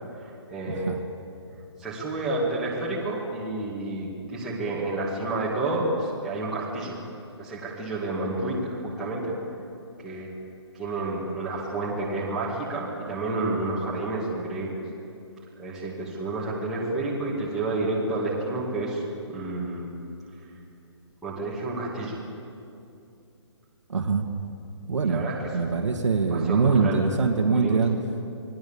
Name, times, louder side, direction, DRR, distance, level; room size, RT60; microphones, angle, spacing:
voice 1, 0.2-0.9 1.8-7.0 7.4-9.3 10.0-10.3 10.7-14.7 15.6-19.9 21.2-22.2 25.0-25.4 25.6-25.9 26.3-27.0 27.5-27.8, right 2 dB, ahead, -8 dB, 2.2 m, -30 dB
voice 2, 23.9-24.2 24.9-25.3 25.5-28.0, right 4 dB, 85° right, 3 dB, 2.5 m, -23 dB
28.5 x 21.5 x 7.3 m, 2.6 s
hypercardioid pair, 180°, 15 cm